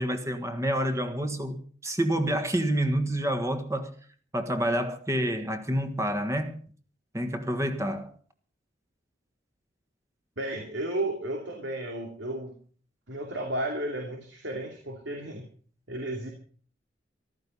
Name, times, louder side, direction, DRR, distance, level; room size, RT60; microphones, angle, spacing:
voice 1, 0.0-3.9 4.3-6.5 7.1-8.1, right 1 dB, 15° right, 1.6 m, -28 dB
voice 2, 10.4-12.5 13.1-15.5 15.9-16.3, right 1 dB, 85° right, 2.6 m, -33 dB
14.5 x 13.5 x 5.5 m
head